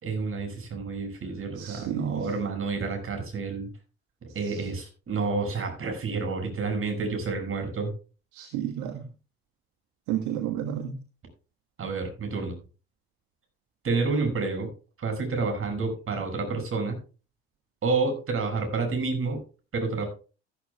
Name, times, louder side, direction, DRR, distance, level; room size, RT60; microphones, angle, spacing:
voice 1, 0.0-3.7 4.3-7.9 11.8-12.6 13.8-14.7 15.0-17.0 17.8-19.4 19.7-20.1, right 4 dB, 40° right, 4 dB, 6.4 m, -29 dB
voice 2, 1.6-2.3 4.4-4.7 8.3-9.1 10.1-11.0, right 10 dB, 65° right, 6 dB, 1.5 m, -31 dB
14.0 x 13.5 x 2.3 m, 0.34 s
hypercardioid pair, 55°, 32 cm